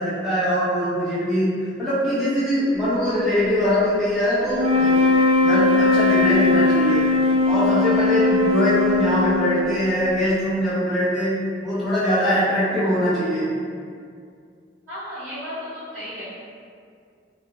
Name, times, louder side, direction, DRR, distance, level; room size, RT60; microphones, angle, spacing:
voice 1, 0.0-5.0 5.4-7.1 7.5-13.5, equal, ahead, -13 dB, 0.7 m, -22 dB
sound 1, 4.5-9.9, left 3 dB, 90° right, 0.3 m, -19 dB
voice 2, 14.9-16.2, equal, 40° right, -16 dB, 0.8 m, -34 dB
2.2 x 2.1 x 2.9 m, 2.3 s
head